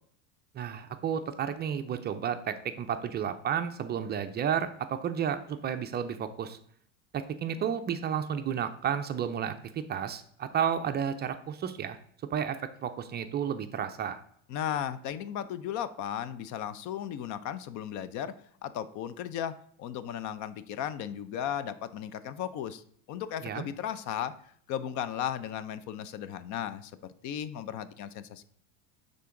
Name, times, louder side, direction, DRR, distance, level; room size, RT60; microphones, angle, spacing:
voice 1, 0.5-6.6 7.1-12.0 12.3-14.2 23.4-23.7, right 8 dB, 25° right, 8 dB, 0.4 m, -32 dB
voice 2, 14.5-18.3 18.6-26.9 27.2-28.4, left 9 dB, 50° left, 15 dB, 0.6 m, -36 dB
9.2 x 3.9 x 3.7 m, 0.64 s
supercardioid pair, 110°, 38 cm